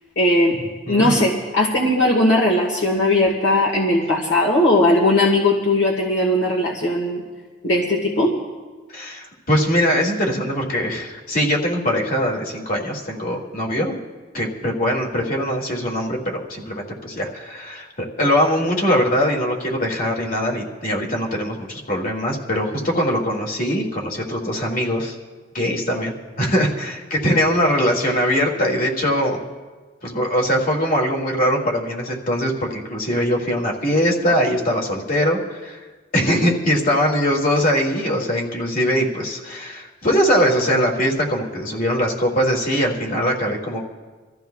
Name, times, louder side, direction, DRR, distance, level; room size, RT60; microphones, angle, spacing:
voice 1, 0.1-0.6 0.9-7.2 7.6-8.4, left 1 dB, 70° left, -1 dB, 1.6 m, -18 dB
voice 2, 0.9-1.2 8.9-13.9 14.3-25.2 25.5-29.4 30.0-35.8 36.1-43.8, equal, 50° left, 0 dB, 2.3 m, -21 dB
26.0 x 14.5 x 2.3 m, 1.3 s
head